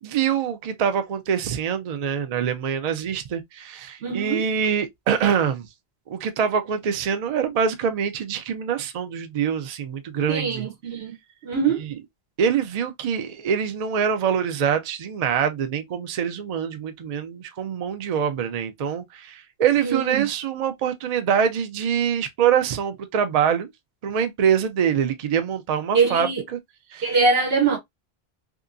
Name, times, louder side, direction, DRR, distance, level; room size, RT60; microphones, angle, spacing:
voice 1, 0.0-5.7 6.1-10.7 11.8-12.0 12.4-23.7 24.0-26.6 26.9-27.2, right 8 dB, 50° right, 0.5 m, -24 dB
voice 2, 4.0-4.4 10.3-11.1 11.4-11.8 19.8-20.2 25.9-26.4 27.0-27.8, right 4 dB, 75° right, 1.0 m, -22 dB
2.8 x 2.4 x 2.4 m
omnidirectional pair, 1.0 m